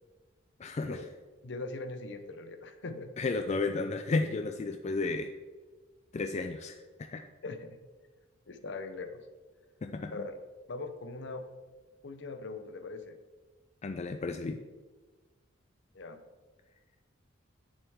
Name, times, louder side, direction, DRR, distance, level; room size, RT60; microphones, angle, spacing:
voice 1, 0.6-1.0 3.2-5.3 6.1-6.8 7.1-7.2 9.8-10.3 13.8-14.6, left 3 dB, 35° left, 6 dB, 0.3 m, -32 dB
voice 2, 1.4-3.1 7.4-7.8 8.5-9.2 10.1-10.4 10.7-11.4 12.0-13.2 15.9-16.2, left 3 dB, 60° left, 8 dB, 0.7 m, -41 dB
8.9 x 6.7 x 3.5 m, 1.3 s
head